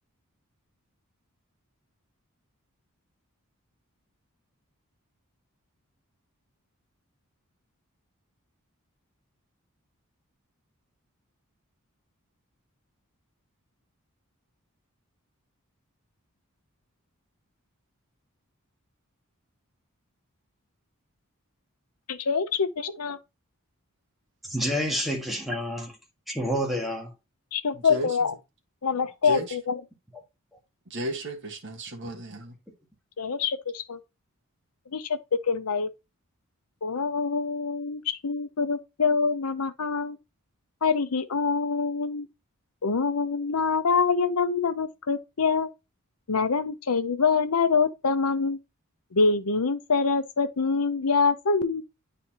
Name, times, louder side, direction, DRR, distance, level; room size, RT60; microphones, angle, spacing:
voice 1, 22.1-23.2 27.5-28.3 28.8-29.8 33.2-34.0 34.9-35.2 35.4-35.9 36.8-40.2 40.8-42.3 42.8-45.7 46.3-48.6 49.1-51.8, left 5 dB, 85° left, 0.8 m, -25 dB
voice 2, 24.4-25.9 26.3-27.1, equal, ahead, 1.7 m, -28 dB
voice 3, 27.7-28.1 29.2-29.6 30.9-32.6, equal, 55° right, 1.5 m, -33 dB
9.7 x 4.2 x 2.9 m
head